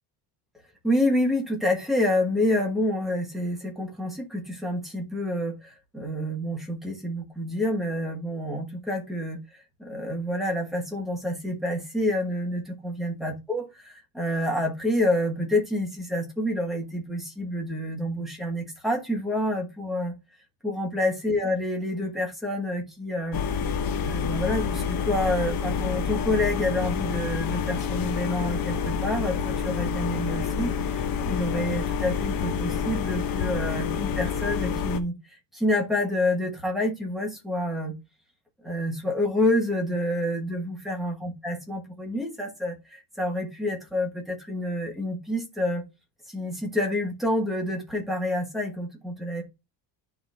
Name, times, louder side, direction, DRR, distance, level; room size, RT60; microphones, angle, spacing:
voice 1, 0.8-9.4 9.8-20.1 20.6-23.4 24.0-37.9 38.6-45.8 46.3-49.4, left 1 dB, ahead, 1.3 m, -28 dB
sound 1, 23.3-35.0, left 6 dB, 50° left, 0.9 m, -28 dB
10.5 x 4.0 x 3.8 m
cardioid pair, 180°, 45 cm